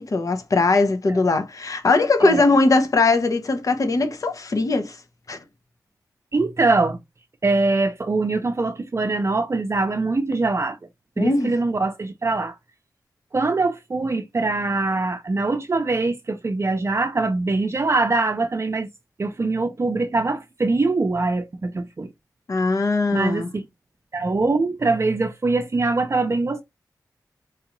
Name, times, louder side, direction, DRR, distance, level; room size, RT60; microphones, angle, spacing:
voice 1, 0.0-5.0 5.3-5.4 11.2-11.5 22.5-23.5, left 3 dB, 55° left, 0.7 m, -20 dB
voice 2, 6.3-7.0 7.4-10.8 11.2-12.5 13.3-18.9 19.2-22.1 23.1-23.7 24.1-26.6, right 3 dB, 40° right, 0.6 m, -23 dB
4.6 x 2.5 x 2.9 m
wide cardioid pair, 90°, 7 cm